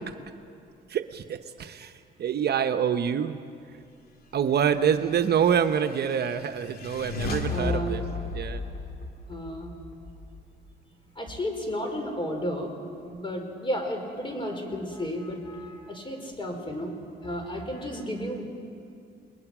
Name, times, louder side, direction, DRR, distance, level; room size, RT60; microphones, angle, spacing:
voice 1, 0.9-1.9 2.2-3.4 4.3-8.0 8.3-8.6, right 8 dB, 55° right, 8 dB, 0.9 m, -26 dB
sound 1, 5.1-10.7, left 4 dB, 50° left, 2.4 m, -35 dB
voice 2, 7.5-8.0 9.3-9.7 11.2-18.4, equal, 25° left, 4 dB, 4.4 m, -33 dB
29.0 x 21.0 x 6.1 m, 2.4 s
cardioid pair, 90°, 20 cm